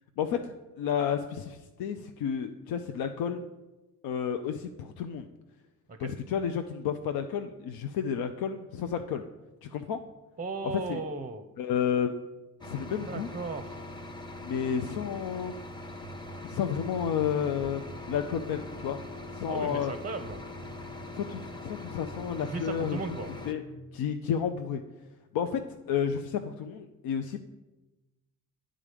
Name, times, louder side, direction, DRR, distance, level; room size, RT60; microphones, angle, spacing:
voice 1, 0.2-3.4 4.0-5.3 6.0-9.2 9.6-10.0 10.6-11.0 11.6-12.1 12.6-13.3 14.4-15.5 16.4-17.8 18.1-19.0 19.3-19.9 21.1-23.0 23.5-23.6 23.9-24.8 25.3-25.6 25.9-27.4, left 8 dB, 60° left, 7 dB, 0.6 m, -31 dB
voice 2, 10.4-11.5 13.1-13.8 19.5-20.4 22.4-23.3, right 3 dB, 20° right, 7 dB, 0.6 m, -36 dB
sound 1, 12.6-23.5, left 1 dB, 10° left, 0.8 m, -42 dB
sound 2, 15.9-23.8, right 1 dB, 85° left, 1.4 m, -51 dB
9.5 x 3.7 x 5.1 m, 1.1 s
hypercardioid pair, 45°, 42 cm